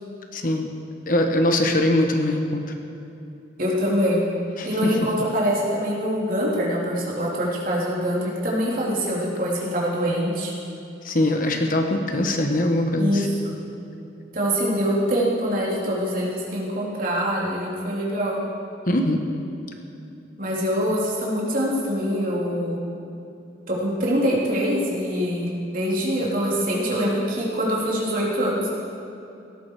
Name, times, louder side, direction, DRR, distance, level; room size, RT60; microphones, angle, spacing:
voice 1, 0.3-0.7 1.1-2.6 4.6-5.0 11.0-13.3 18.9-19.2, left 1 dB, 45° left, 4 dB, 1.2 m, -22 dB
voice 2, 3.6-4.2 4.6-10.5 13.0-13.5 14.3-18.4 20.4-22.8 23.7-28.7, equal, 45° right, -5 dB, 3.4 m, -24 dB
18.0 x 13.5 x 4.8 m, 2.8 s
head